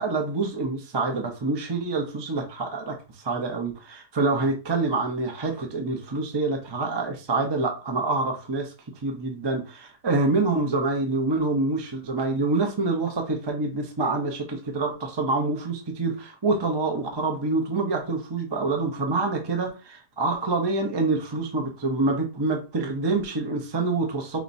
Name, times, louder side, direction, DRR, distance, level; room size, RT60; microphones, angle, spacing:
voice 1, 0.0-2.9 3.2-8.7 9.0-24.4, right 3 dB, 30° right, 2 dB, 0.5 m, -26 dB
5.7 x 3.2 x 2.7 m, 0.32 s
omnidirectional pair, 1.8 m